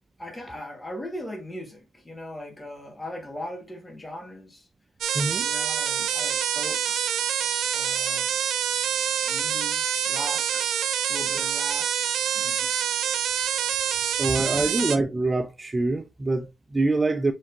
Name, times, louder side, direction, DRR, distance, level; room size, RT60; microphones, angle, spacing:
voice 1, 0.2-4.7 5.4-7.0 7.7-8.3 9.2-10.6 11.1-11.9 12.3-12.7 14.5-14.7, left 1 dB, 15° left, 1.7 m, -39 dB
sound 1, 5.0-15.0, right 9 dB, 75° right, 0.5 m, -26 dB
voice 2, 5.1-5.5 14.2-17.3, right 2 dB, 20° right, 0.4 m, -25 dB
4.5 x 3.5 x 2.7 m
cardioid pair, 90°, 0 cm